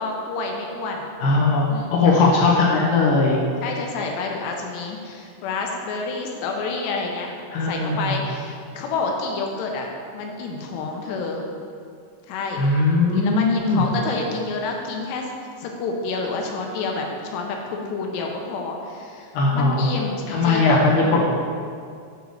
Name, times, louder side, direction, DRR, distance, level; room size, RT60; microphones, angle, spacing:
voice 1, 0.0-1.1 1.7-1.9 3.6-7.4 7.6-9.9 10.1-11.4 12.3-12.6 13.1-15.3 15.6-20.8, left 3 dB, 90° left, 1 dB, 2.9 m, -29 dB
voice 2, 1.2-1.6 1.9-3.4 7.5-8.2 12.6-13.9 19.3-19.8 20.3-21.3, left 3 dB, 70° left, -5 dB, 2.3 m, -19 dB
7.8 x 4.9 x 6.7 m, 2.3 s
omnidirectional pair, 4.9 m